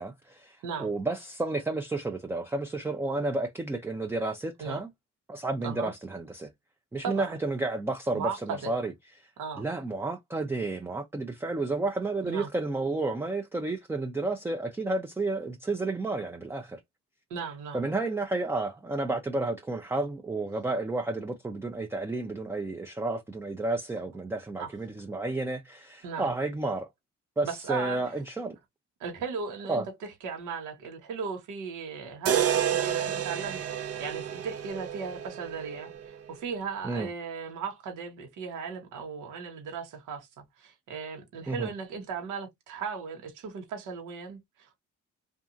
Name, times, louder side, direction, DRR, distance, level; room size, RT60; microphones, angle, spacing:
voice 1, 0.0-4.9 5.3-6.5 6.9-8.9 9.2-9.3 9.6-16.8 17.7-26.9 27.4-28.6 29.7-29.8 36.8-37.1 41.5-41.7, right 2 dB, 10° right, 0.4 m, -31 dB
voice 2, 7.0-7.3 8.1-8.7 9.4-9.6 12.2-12.5 17.3-17.9 24.6-24.7 26.0-26.3 27.4-28.0 29.0-40.3 40.6-44.8, right 5 dB, 90° right, 1.0 m, -37 dB
sound 1, 32.3-36.3, right 9 dB, 50° right, 0.6 m, -30 dB
2.7 x 2.4 x 2.4 m
cardioid pair, 90°, 30 cm